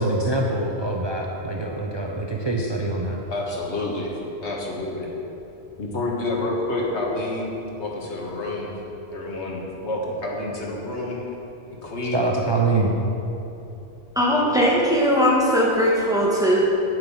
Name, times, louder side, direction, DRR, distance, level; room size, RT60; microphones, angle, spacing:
voice 1, 0.0-3.2 12.1-13.0, right 2 dB, 30° right, 0 dB, 0.6 m, -24 dB
voice 2, 3.3-5.1 5.8-8.7 9.1-11.2 11.7-12.2 14.4-14.6, left 2 dB, 85° left, -2 dB, 1.8 m, -29 dB
voice 3, 14.1-16.7, equal, 5° right, -4 dB, 1.6 m, -19 dB
9.0 x 7.8 x 5.5 m, 2.9 s
omnidirectional pair, 1.1 m